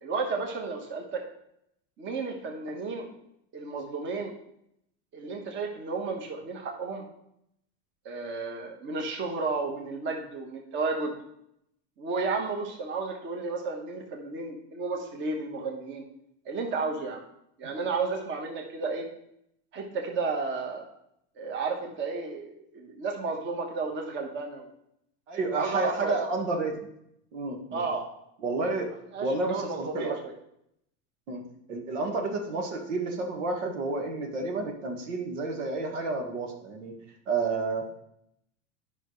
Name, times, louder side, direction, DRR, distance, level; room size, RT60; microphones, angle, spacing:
voice 1, 0.0-1.2 2.0-3.1 3.5-4.3 5.1-7.0 8.0-11.1 12.0-16.0 16.4-17.2 17.6-19.0 19.7-20.8 21.4-24.7 25.5-26.2 27.7-28.0 29.1-30.3, right 4 dB, 30° right, 2 dB, 1.4 m, -32 dB
voice 2, 25.3-26.9 27.3-27.9 28.4-28.9 29.2-30.2 31.3-31.4 31.7-36.9 37.3-38.1, right 3 dB, 85° right, 2 dB, 1.7 m, -30 dB
10.5 x 5.7 x 3.2 m, 0.75 s
supercardioid pair, 145°, 36 cm